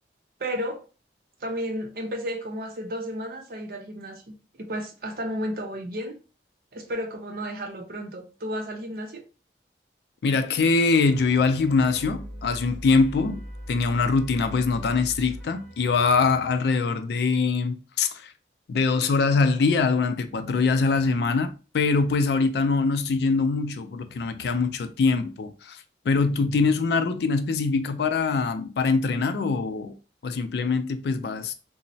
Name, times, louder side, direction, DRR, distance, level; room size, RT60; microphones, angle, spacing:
voice 1, 0.4-0.8 1.4-6.1 6.7-9.2, equal, 55° right, 0.5 m, -33 dB
voice 2, 10.2-18.3 18.7-29.9 30.2-31.5, left 4 dB, 65° left, 0.3 m, -23 dB
sound 1, 11.1-16.5, equal, 5° left, 1.0 m, -40 dB
2.9 x 2.0 x 2.6 m
head